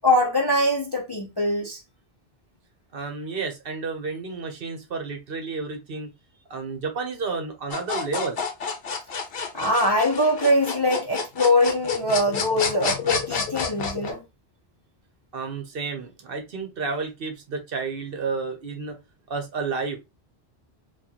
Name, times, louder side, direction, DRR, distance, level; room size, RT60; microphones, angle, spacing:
voice 1, 0.0-1.8 9.5-14.2, left 1 dB, 30° left, 0.5 m, -22 dB
voice 2, 2.9-6.1 6.5-8.4 15.3-19.0 19.3-20.0, right 4 dB, 60° right, 1.0 m, -31 dB
sound 1, 7.7-14.1, left 5 dB, 60° left, 0.9 m, -29 dB
4.3 x 2.4 x 2.8 m
omnidirectional pair, 1.1 m